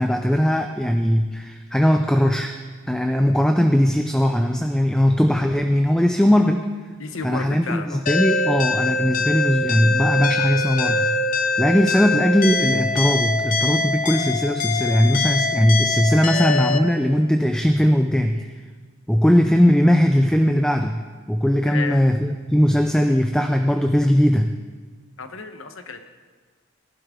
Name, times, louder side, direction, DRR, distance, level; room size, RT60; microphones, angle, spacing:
voice 1, 0.0-2.5 2.9-6.7 7.2-11.1 11.6-18.6 19.1-21.0 21.3-24.6, equal, 5° left, 5 dB, 0.4 m, -19 dB
voice 2, 7.0-8.0 21.7-22.1 25.2-26.0, left 4 dB, 80° left, 7 dB, 1.1 m, -32 dB
sound 1, 8.1-16.8, left 3 dB, 40° left, 0.8 m, -23 dB
18.0 x 11.5 x 3.7 m, 1.5 s
head